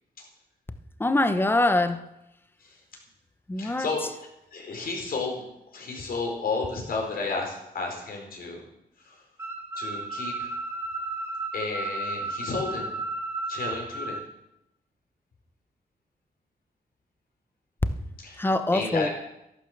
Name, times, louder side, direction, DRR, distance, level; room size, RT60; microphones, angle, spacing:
voice 1, 1.0-2.0 3.5-3.9 18.4-19.1, left 2 dB, 15° left, 10 dB, 1.0 m, -23 dB
voice 2, 3.6-4.0 4.5-5.4 5.7-8.6 9.0-9.2 9.8-10.5 11.5-12.9 13.5-14.2 18.2-18.4 18.7-19.1, left 3 dB, 65° left, 1 dB, 4.5 m, -32 dB
sound 1, 9.4-14.2, right 2 dB, 15° right, 3.0 m, -33 dB
13.0 x 11.5 x 6.7 m, 0.87 s
wide cardioid pair, 130°, 16 cm